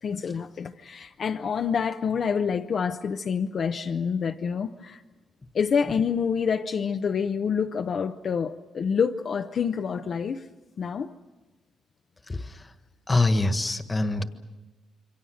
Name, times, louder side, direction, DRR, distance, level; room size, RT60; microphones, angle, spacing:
voice 1, 0.0-5.0 5.5-10.5 10.8-11.1, left 6 dB, 50° left, 0.7 m, -27 dB
voice 2, 12.3-12.7 13.1-14.2, left 2 dB, 20° left, 1.5 m, -25 dB
28.0 x 24.0 x 6.5 m
cardioid pair, 105°, 0 cm